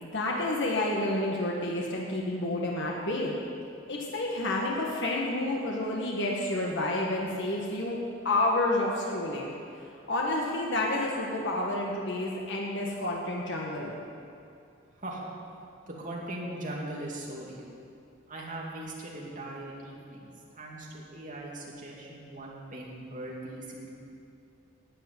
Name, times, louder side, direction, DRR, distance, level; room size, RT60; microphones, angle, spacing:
voice 1, 0.0-3.3 3.9-8.0 8.2-9.5 10.1-13.9, left 2 dB, 65° left, -2 dB, 1.6 m, -29 dB
voice 2, 15.0-15.3 15.9-17.6 18.3-20.3 20.6-23.9, right 1 dB, 40° right, -3 dB, 2.5 m, -39 dB
11.0 x 8.7 x 9.4 m, 2.5 s
head